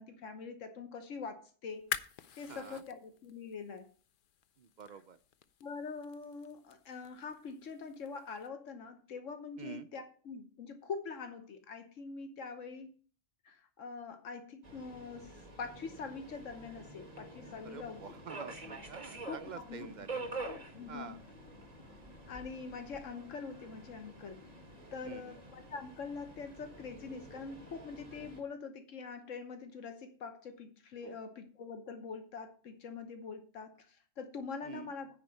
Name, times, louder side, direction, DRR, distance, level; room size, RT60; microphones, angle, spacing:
voice 1, 0.0-1.9 2.4-3.9 5.6-12.9 13.4-18.1 19.3-19.9 20.7-21.2 22.3-24.5 24.9-35.1, left 5 dB, 85° left, 7 dB, 1.4 m, -44 dB
sound 1, 1.7-8.5, left 8 dB, 55° left, 0.6 m, -47 dB
voice 2, 2.5-2.8 4.6-5.2 9.6-9.9 17.6-20.3 20.9-21.2 25.0-25.4 31.0-31.2 34.6-34.9, right 7 dB, 60° right, 11 dB, 0.5 m, -47 dB
Subway metro underground, 14.6-28.4, right 2 dB, 30° right, 1.8 m, -48 dB
9.6 x 4.4 x 7.7 m, 0.42 s
omnidirectional pair, 1.3 m